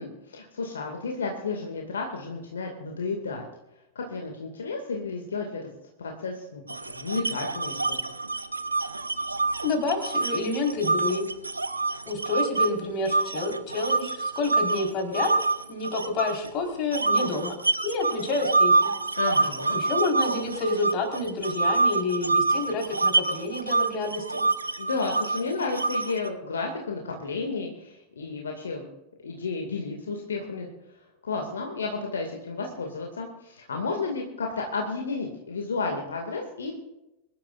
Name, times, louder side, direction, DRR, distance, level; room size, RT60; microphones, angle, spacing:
voice 1, 0.0-3.5 4.0-5.6 6.0-8.1 19.2-19.8 24.8-28.9 29.2-30.7 31.2-36.7, left 4 dB, 70° left, 1 dB, 2.2 m, -32 dB
sound 1, 6.7-12.7 13.1-16.5 16.9-26.3, right 3 dB, 80° right, 0.6 m, -26 dB
voice 2, 9.6-11.2 12.1-15.3 15.7-17.6 17.8-18.9 19.7-24.5, left 3 dB, 35° left, 2 dB, 4.5 m, -29 dB
24.0 x 12.0 x 2.6 m, 0.94 s
figure-of-eight pair, 90°, 0 cm